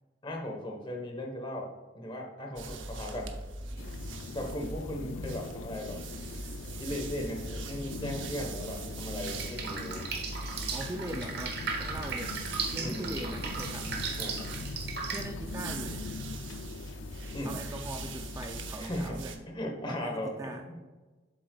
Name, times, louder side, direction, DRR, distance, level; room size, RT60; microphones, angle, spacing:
voice 1, 0.2-3.3 4.3-6.0 6.8-10.1 12.8-13.1 14.2-14.5 17.3-17.6 18.8-19.2 19.5-20.9, left 1 dB, 25° left, 1 dB, 1.2 m, -37 dB
sound 1, 2.6-19.4, right 2 dB, 85° right, 0.7 m, -42 dB
sound 2, 3.8-18.7, left 4 dB, 80° left, 0.4 m, -42 dB
Drip, 9.2-15.2, right 5 dB, 60° right, 1.0 m, -37 dB
voice 2, 10.7-12.4 12.7-14.0 15.1-16.1 17.4-19.4 19.9-20.7, right 1 dB, 15° right, 4 dB, 0.3 m, -40 dB
7.6 x 7.5 x 2.3 m, 1.2 s
head